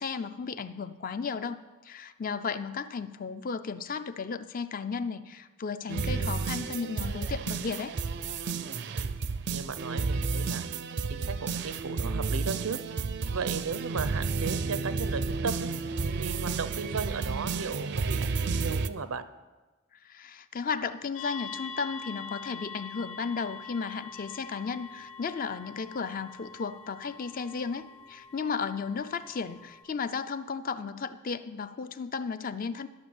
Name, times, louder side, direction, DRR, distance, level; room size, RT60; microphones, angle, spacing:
voice 1, 0.0-8.0 20.0-32.9, left 5 dB, 40° left, 12 dB, 0.5 m, -34 dB
sound 1, 5.9-18.9, right 4 dB, 55° right, 0.5 m, -31 dB
voice 2, 9.5-10.6 11.1-12.8 13.3-15.7 16.2-19.2, right 5 dB, 90° right, 12 dB, 0.7 m, -36 dB
sound 2, 21.1-29.8, left 6 dB, 80° left, 1.4 m, -44 dB
12.5 x 6.6 x 7.1 m, 1.2 s
head